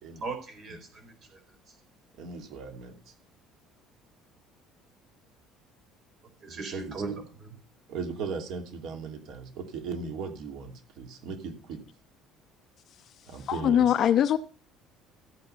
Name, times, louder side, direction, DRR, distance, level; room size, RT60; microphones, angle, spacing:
voice 1, 0.2-1.4 6.4-7.5, right 4 dB, 35° right, 5 dB, 4.4 m, -38 dB
voice 2, 2.2-3.1 6.5-7.0 7.9-11.8 13.3-13.9, right 5 dB, 60° right, 4 dB, 2.9 m, -38 dB
voice 3, 13.5-14.4, left 10 dB, 40° left, 11 dB, 0.7 m, -22 dB
15.5 x 7.9 x 5.6 m, 0.37 s
cardioid pair, 170°, 0 cm